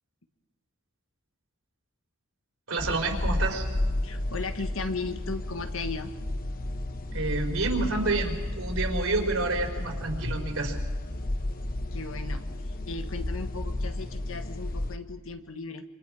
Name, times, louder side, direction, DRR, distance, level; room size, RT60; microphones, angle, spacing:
voice 1, 2.7-3.7 7.1-10.8, right 3 dB, 70° right, 2 dB, 4.1 m, -29 dB
sound 1, 2.8-15.0, left 1 dB, 40° left, 1.0 m, -32 dB
voice 2, 4.0-6.1 11.9-12.4 12.9-15.8, left 3 dB, 65° left, 7 dB, 1.5 m, -36 dB
27.5 x 26.0 x 4.9 m, 1.3 s
head